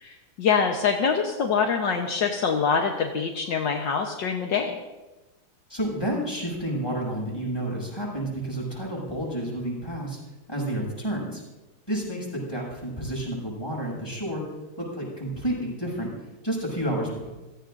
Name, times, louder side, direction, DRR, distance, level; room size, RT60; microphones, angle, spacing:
voice 1, 0.0-4.8, left 6 dB, 70° left, 2 dB, 1.8 m, -25 dB
voice 2, 5.7-10.2 10.5-11.4 11.9-14.4 14.8-16.1 16.4-17.3, right 1 dB, 10° left, -3 dB, 7.4 m, -30 dB
29.5 x 17.5 x 2.7 m, 1.1 s
omnidirectional pair, 2.1 m